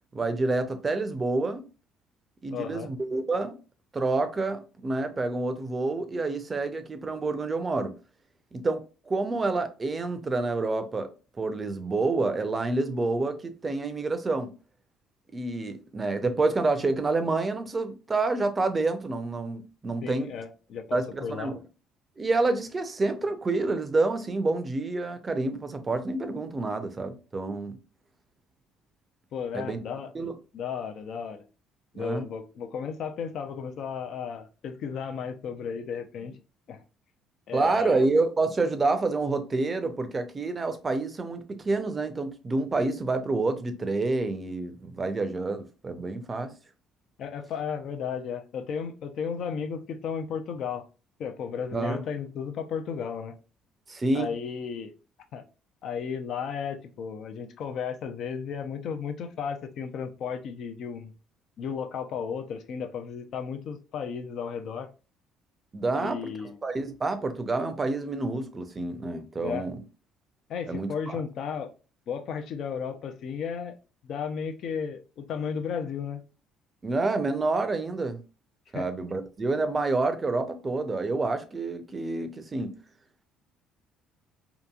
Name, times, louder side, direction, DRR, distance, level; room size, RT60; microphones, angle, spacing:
voice 1, 0.1-1.6 2.4-3.6 3.9-7.9 8.5-11.1 11.4-14.5 15.3-20.3 20.9-21.6 22.2-27.8 29.5-29.8 30.1-30.4 32.0-32.3 37.5-46.5 51.7-52.0 53.9-54.3 65.7-69.8 70.7-71.2 76.8-78.2 78.7-82.7, right 3 dB, 30° right, 0.5 m, -28 dB
voice 2, 2.5-2.9 20.0-21.5 29.3-30.1 30.5-31.5 31.9-36.4 36.7-36.8 37.5-38.1 47.2-50.9 51.2-53.3 54.1-54.9 55.3-55.4 55.8-61.1 61.6-64.9 65.9-66.6 69.4-69.7 70.5-71.7 72.1-73.8 74.0-76.2 78.7-78.9, left 6 dB, 60° left, 0.5 m, -34 dB
2.9 x 2.5 x 2.3 m
hypercardioid pair, 65°, 0 cm